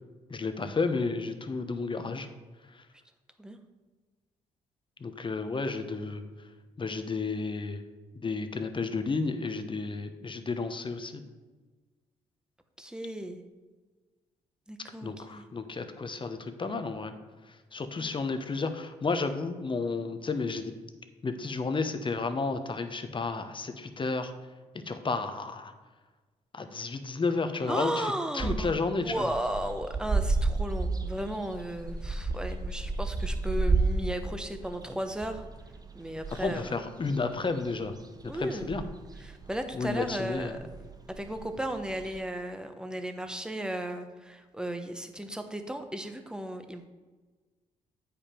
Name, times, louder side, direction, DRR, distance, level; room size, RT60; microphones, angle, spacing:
voice 1, 0.3-2.3 2.7-2.9 5.0-6.2 6.8-7.8 8.1-11.2 15.0-17.1 17.5-20.7 21.2-24.3 24.8-25.7 26.5-29.3 36.4-37.9 38.2-38.8 39.7-40.6, left 4 dB, 35° left, 8 dB, 1.0 m, -32 dB
voice 2, 12.8-13.4 14.7-15.5 18.0-18.1 27.7-28.7 29.0-35.4 35.9-36.7 38.3-38.8 39.2-40.6 41.1-46.8, right 1 dB, 5° right, 7 dB, 1.0 m, -35 dB
sound 1, 28.4-42.2, right 3 dB, 25° right, 0.7 m, -33 dB
8.3 x 5.2 x 4.5 m, 1.3 s
hypercardioid pair, 50°, 15 cm